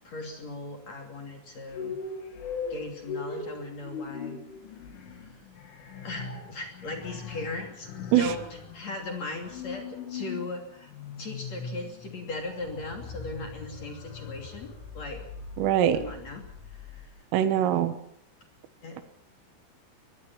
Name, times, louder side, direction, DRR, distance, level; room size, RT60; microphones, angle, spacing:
voice 1, 0.0-2.0 2.7-4.4 5.1-5.3 6.0-10.9 11.2-15.2 15.9-17.1 17.5-17.9 18.8-19.0, left 2 dB, 40° left, 2 dB, 3.4 m, -38 dB
sound 1, 1.7-17.1, left 5 dB, 70° left, 5.4 m, -40 dB
voice 2, 15.6-16.0 17.3-18.0, right 11 dB, 80° right, 10 dB, 3.9 m, -22 dB
23.0 x 22.0 x 6.1 m, 0.68 s
omnidirectional pair, 5.8 m